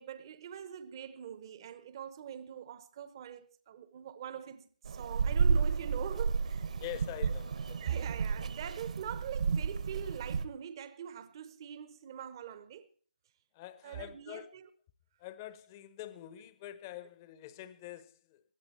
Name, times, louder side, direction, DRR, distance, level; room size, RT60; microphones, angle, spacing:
voice 1, 0.0-6.7 7.2-7.3 7.8-12.9 13.8-14.7, right 9 dB, 30° right, 0.9 m, -43 dB
sound 1, 4.8-10.4, right 5 dB, 50° right, 1.3 m, -32 dB
voice 2, 6.8-7.9 13.5-14.5 15.2-18.4, left 14 dB, 20° left, 0.9 m, -45 dB
18.5 x 12.0 x 4.4 m
figure-of-eight pair, 155°, 5 cm